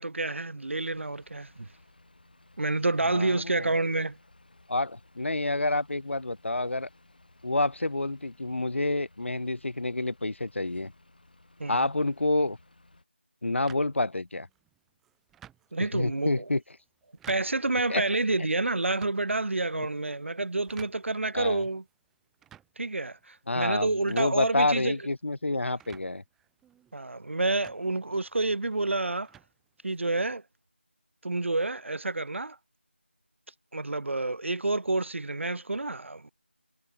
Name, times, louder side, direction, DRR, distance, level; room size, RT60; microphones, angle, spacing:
voice 1, 0.0-1.7 2.6-4.2 11.6-11.9 15.7-16.4 17.3-21.8 22.8-25.0 26.9-29.3 29.8-30.4 31.2-32.6 33.7-36.3, right 2 dB, 80° right, 0.5 m, -29 dB
sound 1, 0.6-13.0, left 2 dB, 45° left, 4.4 m, -59 dB
voice 2, 3.1-3.8 4.7-6.9 7.4-10.9 11.7-12.6 13.4-14.5 15.8-16.6 17.9-18.1 19.7-19.9 21.3-21.6 23.5-26.2, left 2 dB, 80° left, 0.7 m, -28 dB
sound 2, 13.7-30.3, right 10 dB, ahead, 1.7 m, -58 dB
figure-of-eight pair, 175°, 7 cm